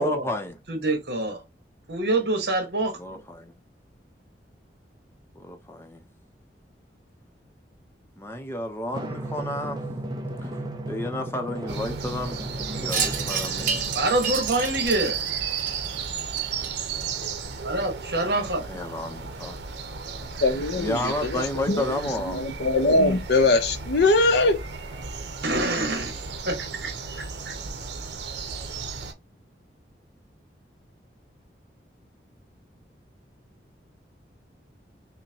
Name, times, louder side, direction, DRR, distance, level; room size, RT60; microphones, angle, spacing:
voice 1, 0.0-0.6 2.9-3.5 5.4-6.1 8.2-9.8 10.4-10.5 10.9-12.4 12.7-14.0 18.6-19.6 20.8-22.4, left 1 dB, 15° left, 0.7 m, -31 dB
voice 2, 0.7-1.4 1.9-3.2 13.9-15.2 17.6-18.6 25.4-26.2 26.5-26.9 27.4-27.5, right 2 dB, 70° right, 1.2 m, -26 dB
Drum, 8.9-14.0, right 1 dB, 25° right, 0.5 m, -34 dB
sound 1, 11.7-29.1, right 6 dB, 85° right, 0.7 m, -34 dB
Wind chime, 12.9-17.5, right 6 dB, 45° right, 0.9 m, -32 dB
voice 3, 20.4-22.0 22.3-24.6, left 2 dB, 75° left, 0.7 m, -22 dB
5.6 x 2.2 x 2.8 m
head